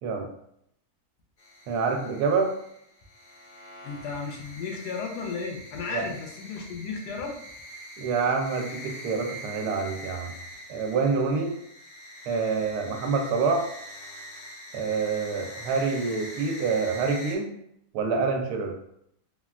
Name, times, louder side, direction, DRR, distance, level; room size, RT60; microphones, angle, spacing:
sound 1, 1.4-17.4, equal, 55° left, 0.6 m, -44 dB
voice 1, 1.7-2.5 5.9-6.1 8.0-10.3 10.7-11.5 12.3-13.7 14.7-17.5 17.9-18.7, right 4 dB, 80° right, 3 dB, 1.1 m, -26 dB
voice 2, 3.8-7.4, left 4 dB, 85° left, 2 dB, 1.2 m, -34 dB
3.3 x 2.2 x 2.3 m, 0.73 s
omnidirectional pair, 1.7 m